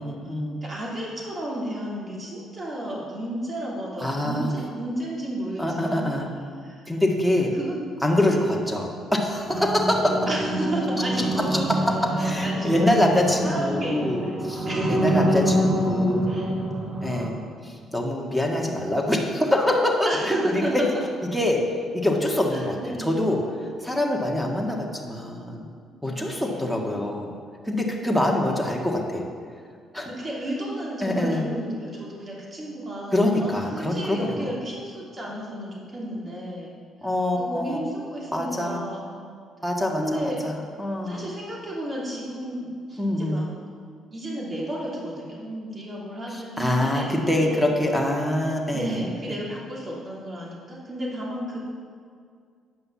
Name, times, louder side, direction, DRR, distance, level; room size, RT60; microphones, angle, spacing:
voice 1, 0.0-0.6 4.0-4.4 5.6-6.3 6.9-7.5 8.0-10.2 12.2-16.4 17.0-17.3 17.6-20.6 21.3-21.6 21.9-25.7 26.0-27.3 27.6-29.2 29.9-30.1 31.0-31.5 33.1-34.4 37.0-37.8 38.3-38.8 39.6-41.4 43.0-43.4 46.3-49.0 49.3-49.4, left 1 dB, ahead, 0 dB, 1.7 m, -25 dB
voice 2, 0.6-6.2 6.6-6.8 7.5-7.8 8.3-8.6 10.3-11.7 12.2-14.4 14.6-15.5 16.3-16.5 20.0-20.9 22.5-23.2 26.0-26.7 30.0-36.7 37.4-39.0 40.0-40.4 41.0-43.5 44.1-47.7 48.7-51.6, right 1 dB, 35° right, -4 dB, 2.9 m, -32 dB
sound 1, 9.5-17.3, right 1 dB, 55° right, 1.6 m, -26 dB
9.5 x 5.5 x 7.1 m, 2.1 s
cardioid pair, 80°, 0 cm